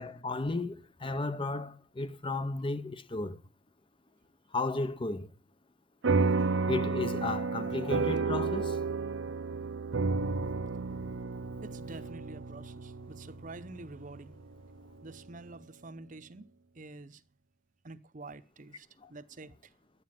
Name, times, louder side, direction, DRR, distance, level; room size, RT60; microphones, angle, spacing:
voice 1, 0.0-3.4 4.5-5.3 6.7-8.8 19.0-19.1, left 2 dB, 25° left, 0.7 m, -34 dB
sound 1, 6.0-14.8, right 4 dB, 85° right, 0.7 m, -31 dB
voice 2, 11.6-14.4 15.0-16.5 16.7-17.2 17.8-19.7, right 2 dB, 45° right, 0.8 m, -47 dB
11.5 x 9.6 x 7.5 m
head